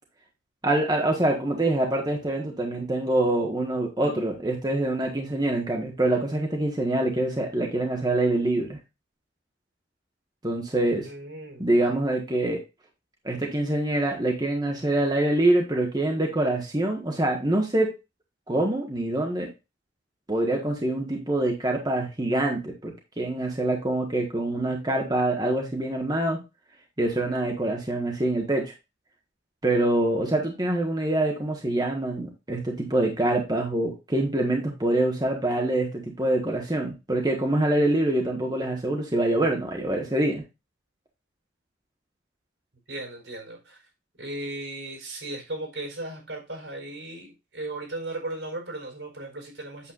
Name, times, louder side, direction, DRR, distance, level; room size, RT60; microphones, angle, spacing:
voice 1, 0.6-8.8 10.4-11.1 11.6-12.6 13.2-17.9 18.5-19.5 20.3-26.4 27.0-28.7 29.6-40.4, right 1 dB, 20° right, 1.3 m, -25 dB
voice 2, 11.0-11.9 42.9-43.8 44.2-49.9, right 2 dB, 85° right, 4.8 m, -36 dB
8.5 x 7.2 x 2.5 m
head